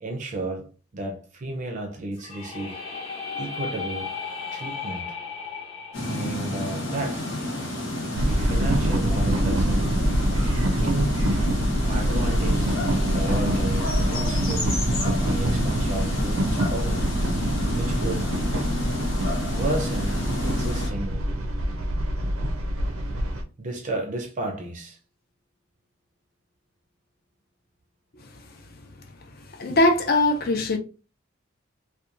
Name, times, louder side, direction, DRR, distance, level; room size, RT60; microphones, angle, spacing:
voice 1, 0.0-2.8 3.3-4.1 4.5-5.2 6.0-7.3 8.2-9.9 10.7-11.2 11.9-17.2 17.7-18.3 19.5-21.3 23.6-25.0, right 2 dB, 35° right, 0.4 m, -33 dB
sound 1, 2.1-8.0, left 5 dB, 25° left, 0.9 m, -36 dB
sound 2, 5.9-20.9, left 1 dB, 70° left, 0.9 m, -30 dB
sound 3, 8.1-23.4, right 1 dB, 85° right, 0.5 m, -25 dB
voice 2, 29.4-30.8, left 2 dB, 45° left, 0.5 m, -22 dB
2.8 x 2.2 x 2.4 m
head